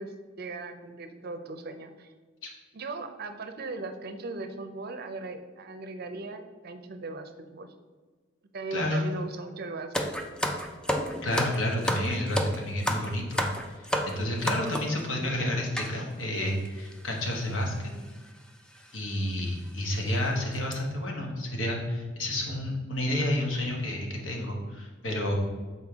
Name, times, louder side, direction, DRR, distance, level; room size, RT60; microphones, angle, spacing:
voice 1, 0.0-2.1 2.7-7.7 8.5-10.1, right 3 dB, 55° right, 7 dB, 0.6 m, -38 dB
voice 2, 8.7-9.0 11.2-13.4 13.7-17.9 18.9-25.4, left 1 dB, 80° left, 0 dB, 1.2 m, -30 dB
sound 1, 9.9-15.0 15.8-15.9 16.7-16.8 16.9-17.1 18.1-18.3 18.8-18.9 19.4-19.5 19.9-20.2 20.5-20.7, equal, 5° left, 0.4 m, -30 dB
6.6 x 4.3 x 3.5 m, 1.4 s
head